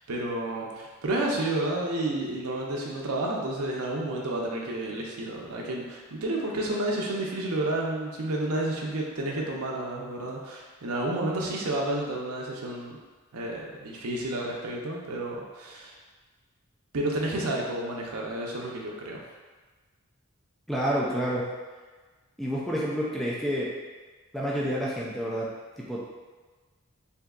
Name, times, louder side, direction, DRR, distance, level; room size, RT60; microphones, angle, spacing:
voice 1, 0.1-13.0 13.3-16.0 16.9-19.2, right 1 dB, 90° right, -2 dB, 0.6 m, -30 dB
voice 2, 20.7-21.5 22.4-23.7 24.3-25.5 25.8-26.1, equal, ahead, -6 dB, 0.3 m, -29 dB
3.5 x 2.7 x 2.3 m, 1.3 s
head